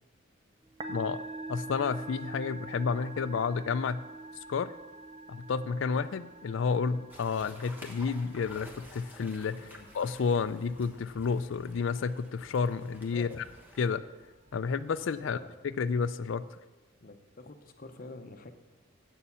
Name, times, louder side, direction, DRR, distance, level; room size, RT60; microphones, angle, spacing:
Musical instrument, 0.6-15.4, right 2 dB, 30° right, 0.5 m, -47 dB
voice 1, 0.9-1.2 1.5-4.0 4.5-4.7 5.3-13.4 13.8-14.0 14.5-15.4 15.6-16.5, left 5 dB, 65° left, 13 dB, 0.4 m, -31 dB
sound 1, 7.1-13.9, left 1 dB, 10° right, 1.1 m, -52 dB
voice 2, 13.1-13.5 15.2-15.5 17.0-18.5, left 2 dB, 45° left, 7 dB, 0.8 m, -47 dB
8.3 x 6.9 x 6.9 m, 1.3 s
head